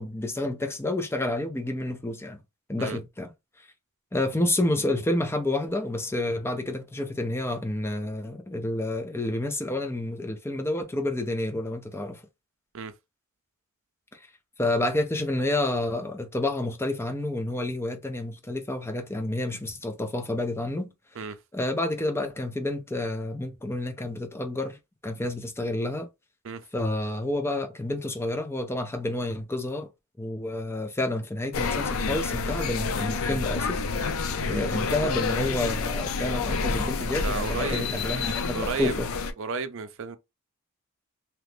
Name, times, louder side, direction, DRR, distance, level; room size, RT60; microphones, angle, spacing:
voice 1, 0.0-2.4 2.7-3.3 4.1-12.2 14.6-20.9 21.5-24.8 25.0-26.1 26.7-29.9 30.2-33.8 34.5-39.1, left 1 dB, 10° left, 0.5 m, -29 dB
sound 1, 31.5-39.3, left 4 dB, 75° left, 0.5 m, -28 dB
voice 2, 37.1-37.9 38.5-39.0 39.4-40.2, right 5 dB, 65° right, 0.5 m, -33 dB
2.9 x 2.5 x 3.4 m
head